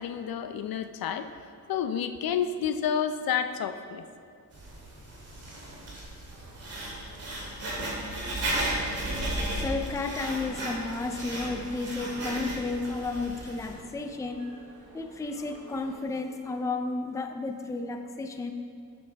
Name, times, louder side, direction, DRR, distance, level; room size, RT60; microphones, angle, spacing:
voice 1, 0.0-1.4 1.7-4.0, left 8 dB, 80° left, 9 dB, 0.6 m, -30 dB
Writing, 4.5-13.7, right 1 dB, 40° right, 2.4 m, -34 dB
sound 1, 6.3-16.0, right 2 dB, 85° right, 1.7 m, -51 dB
voice 2, 9.5-14.5 14.9-18.5, left 3 dB, 10° left, 5 dB, 0.4 m, -32 dB
12.0 x 8.4 x 3.4 m, 2.4 s
wide cardioid pair, 170°, 35 cm